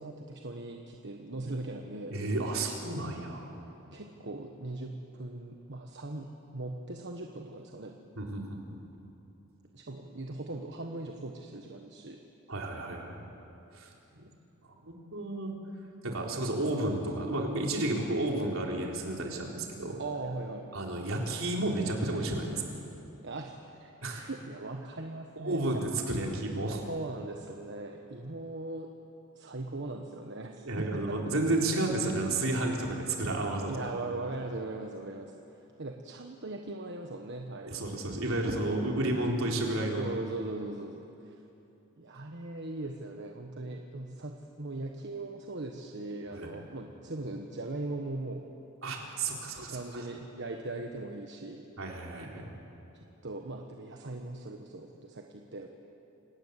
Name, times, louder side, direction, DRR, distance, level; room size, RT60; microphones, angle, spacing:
voice 1, 0.0-2.2 3.9-8.0 9.7-12.2 20.0-20.7 23.2-25.8 26.9-28.9 29.3-31.3 33.7-35.3 35.8-37.8 40.0-41.4 42.0-48.5 49.5-51.6 52.9-55.7, right 2 dB, 55° right, 3 dB, 1.3 m, -39 dB
voice 2, 2.1-3.5 8.2-8.6 12.5-13.3 13.7-14.2 14.7-15.5 16.0-20.0 20.7-22.6 24.0-24.2 25.4-26.9 30.6-33.7 37.7-40.0 46.3-46.5 48.8-49.8 51.8-52.5, right 2 dB, 75° right, 0 dB, 4.0 m, -32 dB
28.5 x 18.5 x 8.3 m, 2.9 s
head